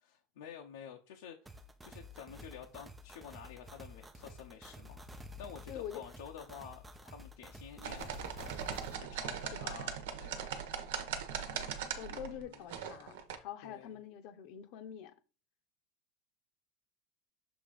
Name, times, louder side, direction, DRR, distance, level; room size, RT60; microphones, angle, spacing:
voice 1, 0.0-8.6 9.0-10.5 12.1-12.7 13.6-14.0, left 8 dB, 80° left, 0.8 m, -50 dB
sound 1, 1.5-9.0, left 1 dB, 5° right, 0.4 m, -51 dB
voice 2, 5.7-6.0 7.8-7.9 9.5-9.8 11.4-15.1, left 10 dB, 45° left, 0.8 m, -46 dB
sound 2, 7.8-13.4, right 8 dB, 80° right, 1.1 m, -40 dB
7.1 x 2.9 x 5.0 m
supercardioid pair, 175°, 0 cm